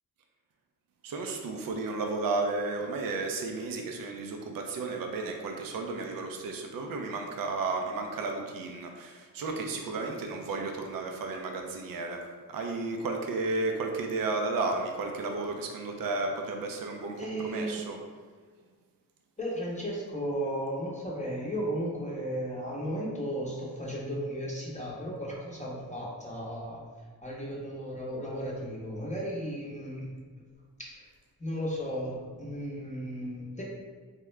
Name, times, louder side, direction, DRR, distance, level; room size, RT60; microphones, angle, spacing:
voice 1, 1.0-12.2 12.5-18.0, right 3 dB, 65° right, 3 dB, 0.5 m, -33 dB
voice 2, 17.2-17.9 19.4-26.8 27.2-30.1 30.8-31.1 31.4-33.6, equal, 20° left, -5 dB, 0.8 m, -35 dB
3.6 x 2.0 x 3.2 m, 1.5 s
cardioid pair, 65°, 37 cm